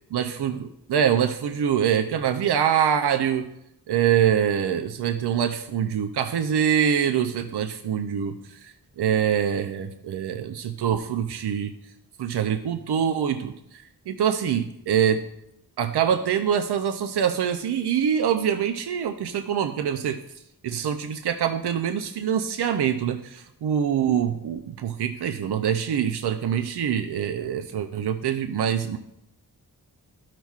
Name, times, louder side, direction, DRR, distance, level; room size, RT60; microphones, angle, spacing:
voice 1, 0.1-3.5 3.9-8.3 8.6-11.7 12.2-15.2 15.8-20.2 20.6-29.0, right 8 dB, 90° right, 7 dB, 0.5 m, -24 dB
14.0 x 5.8 x 2.4 m, 0.81 s
wide cardioid pair, 140°, 39 cm